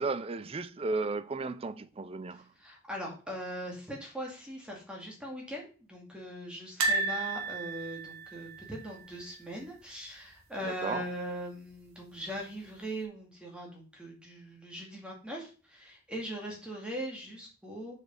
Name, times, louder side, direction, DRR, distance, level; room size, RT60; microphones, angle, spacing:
voice 1, 0.0-2.4 10.8-11.0, right 3 dB, 25° right, 0.4 m, -34 dB
voice 2, 2.3-18.0, equal, 5° right, 2.2 m, -40 dB
sound 1, 6.8-9.8 10.1-10.3 10.6-10.7 11.9-12.4 13.0-13.1, right 3 dB, 80° right, 1.6 m, -34 dB
6.7 x 5.0 x 5.2 m
head